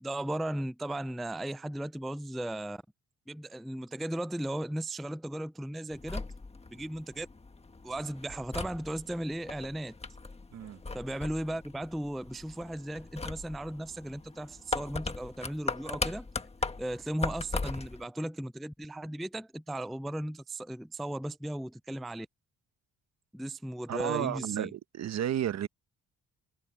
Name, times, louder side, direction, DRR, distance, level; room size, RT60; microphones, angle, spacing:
voice 1, 0.0-2.8 3.3-6.3 6.7-7.3 7.8-10.0 10.9-16.3 16.8-22.3 23.3-24.7, right 1 dB, ahead, 0.3 m, -36 dB
sound 1, 5.9-18.0, left 3 dB, 20° left, 1.6 m, -39 dB
voice 2, 23.9-25.7, right 10 dB, 60° right, 1.1 m, -32 dB
cardioid pair, 90°, 30 cm